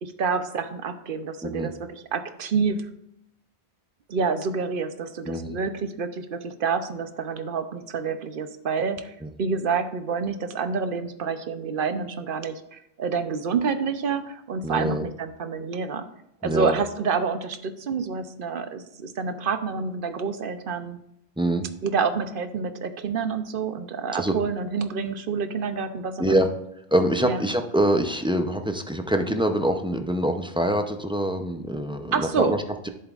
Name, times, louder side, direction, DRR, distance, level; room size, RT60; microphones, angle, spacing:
voice 1, 0.0-2.8 4.1-16.1 16.4-21.0 21.8-26.5 27.2-27.4 32.1-32.5, right 5 dB, 60° right, 9 dB, 0.9 m, -28 dB
voice 2, 5.3-5.6 9.2-9.3 14.6-15.0 16.4-16.8 21.4-21.6 24.1-24.3 26.2-26.5 26.9-32.9, right 1 dB, 5° right, 5 dB, 0.4 m, -25 dB
10.5 x 7.7 x 2.4 m, 0.79 s
omnidirectional pair, 1.1 m